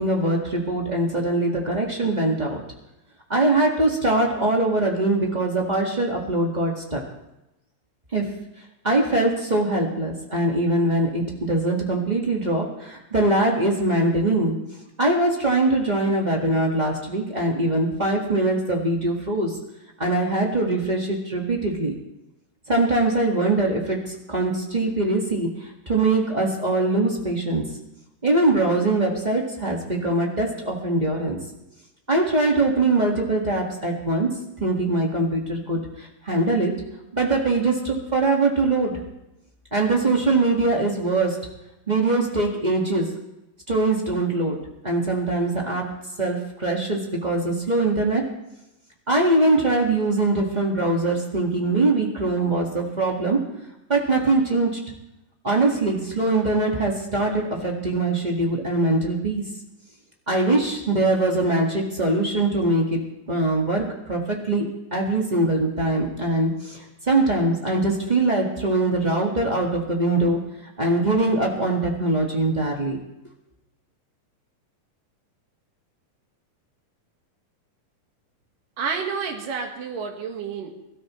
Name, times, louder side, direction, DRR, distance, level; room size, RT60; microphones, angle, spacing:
voice 1, 0.0-2.6 3.3-7.0 8.1-8.3 8.8-14.5 15.0-19.6 20.0-21.9 22.7-27.6 28.2-31.4 32.1-34.3 34.6-36.7 37.1-39.0 39.7-41.4 41.9-43.1 43.7-44.6 44.8-45.9 46.2-48.2 49.1-53.4 53.9-54.8 55.4-59.4 60.3-63.0 63.3-70.4 70.8-73.0, right 2 dB, 25° right, -1 dB, 1.0 m, -22 dB
voice 2, 78.8-80.7, right 5 dB, 75° right, 3 dB, 3.2 m, -29 dB
23.0 x 13.0 x 3.2 m, 0.94 s
omnidirectional pair, 4.0 m